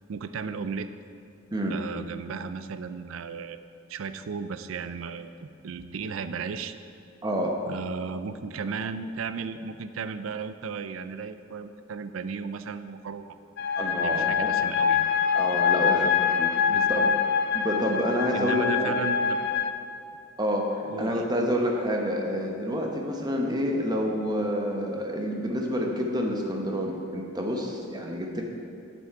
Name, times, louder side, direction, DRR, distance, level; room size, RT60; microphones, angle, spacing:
voice 1, 0.1-0.9 1.7-3.6 3.9-6.7 7.7-13.4 14.0-15.1 15.9-16.1 16.7-17.0 18.3-19.5 20.9-21.2, right 5 dB, 75° right, 11 dB, 0.4 m, -35 dB
voice 2, 7.2-7.5 13.8-14.5 15.3-16.5 16.9-17.1 17.5-19.0 20.4-28.4, equal, 20° right, 1 dB, 0.9 m, -28 dB
sound 1, 13.6-19.7, left 7 dB, 55° left, 0.4 m, -25 dB
10.5 x 6.2 x 4.6 m, 2.6 s
head